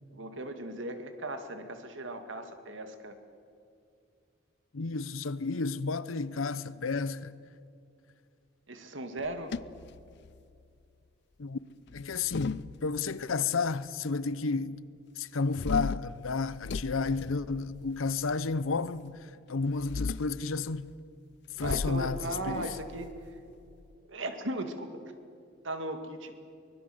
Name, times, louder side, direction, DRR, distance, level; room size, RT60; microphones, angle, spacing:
voice 1, 0.1-3.2 8.7-9.6 21.6-23.4 24.1-25.0 25.6-26.3, right 1 dB, 65° right, 2.1 m, -37 dB
voice 2, 4.7-7.3 11.4-11.6 11.9-14.8 15.2-20.9 21.6-22.7, left 4 dB, 85° left, 0.8 m, -32 dB
sound 1, 9.2-10.6 11.9-13.3 15.5-18.1 19.7-20.4 21.6-23.9, left 4 dB, 55° left, 0.5 m, -37 dB
24.0 x 21.0 x 7.9 m
head